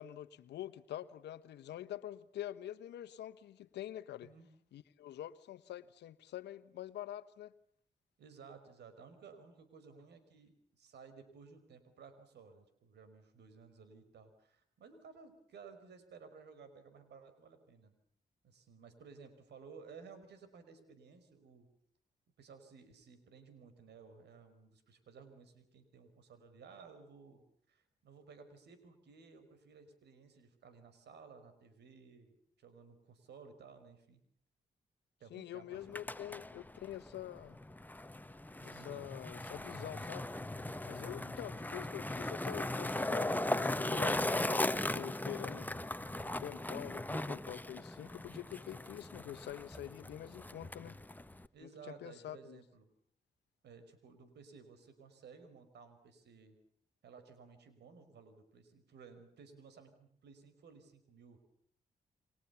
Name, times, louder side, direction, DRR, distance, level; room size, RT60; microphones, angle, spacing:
voice 1, 0.0-4.3 4.7-7.5 35.3-37.6 38.6-40.3 40.9-45.7 46.3-51.0 51.6-52.6, left 12 dB, 80° left, 13 dB, 1.2 m, -46 dB
voice 2, 8.2-18.0 18.4-21.7 22.4-34.2 35.2-36.1 38.6-39.1 41.2-41.4 51.5-52.9 53.6-56.6 57.0-61.4, right 5 dB, 75° right, 10 dB, 5.2 m, -56 dB
Skateboard, 35.7-51.5, left 1 dB, 10° left, 1.5 m, -38 dB
29.5 x 23.5 x 7.1 m, 0.67 s
supercardioid pair, 45°, 17 cm